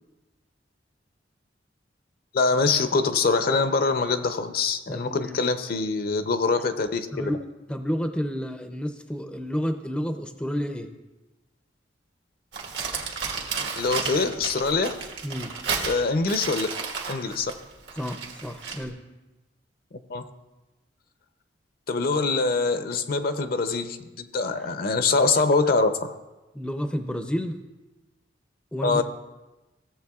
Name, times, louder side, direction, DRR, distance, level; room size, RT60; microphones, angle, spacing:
voice 1, 2.3-7.2 13.8-15.0 15.8-16.7 17.1-17.5 20.1-20.2 21.9-26.2 28.8-29.0, left 4 dB, 55° left, 9 dB, 0.6 m, -24 dB
voice 2, 4.9-5.4 7.1-7.4 7.7-10.9 15.2-15.5 18.0-19.0 26.5-27.6 28.7-29.0, equal, 5° left, 6 dB, 0.4 m, -30 dB
Crumpling crinkling, 12.5-18.9, right 5 dB, 80° right, 1.5 m, -32 dB
16.5 x 7.3 x 2.4 m, 1.1 s
head